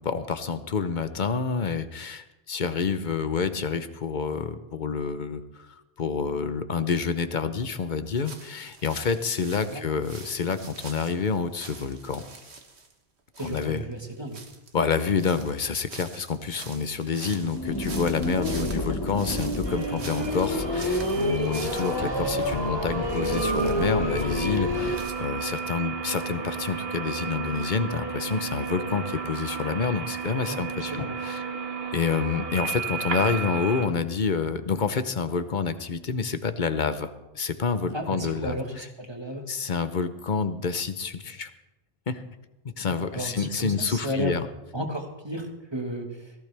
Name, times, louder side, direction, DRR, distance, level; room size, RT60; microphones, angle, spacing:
voice 1, 0.0-12.2 13.4-13.8 14.7-31.4 31.9-38.9 39.5-41.5 42.1-42.2 42.8-44.5, left 5 dB, 50° left, 11 dB, 0.9 m, -28 dB
sound 1, 8.1-12.9 13.3-22.7 22.9-25.1, right 4 dB, 85° right, 1.7 m, -45 dB
voice 2, 13.4-14.4 19.9-20.0 30.4-31.1 37.9-39.4 42.9-44.3 44.7-46.3, equal, 25° right, 3 dB, 1.6 m, -33 dB
sound 2, 17.3-25.0, left 1 dB, 20° left, 1.4 m, -29 dB
sound 3, 19.6-33.9, right 5 dB, 65° right, 1.8 m, -33 dB
17.5 x 15.0 x 3.4 m, 1.0 s
omnidirectional pair, 1.1 m